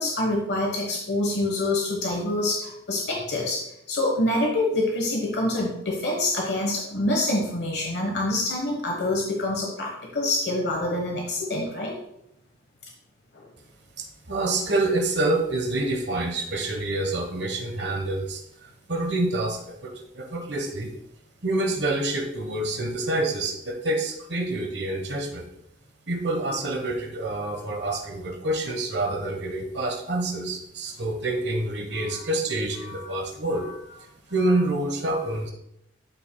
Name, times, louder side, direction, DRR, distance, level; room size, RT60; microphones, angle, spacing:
voice 1, 0.0-11.9 13.3-13.4 31.9-32.2 32.8-33.0 33.6-33.7, left 2 dB, 60° left, 0 dB, 1.2 m, -26 dB
voice 2, 14.0-20.9 21.4-25.5 26.1-33.7 34.3-35.5, right 2 dB, 60° right, 3 dB, 1.3 m, -27 dB
12.0 x 5.9 x 2.3 m, 0.78 s
head